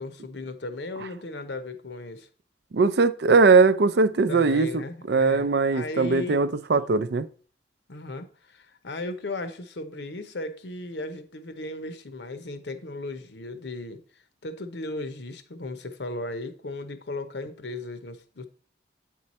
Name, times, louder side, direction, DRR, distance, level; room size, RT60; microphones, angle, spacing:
voice 1, 0.0-2.3 4.3-6.4 7.9-14.0 14.4-18.4, left 2 dB, 70° left, 0.9 m, -36 dB
voice 2, 2.7-7.3, right 4 dB, 65° right, 0.5 m, -20 dB
8.7 x 4.6 x 4.2 m
head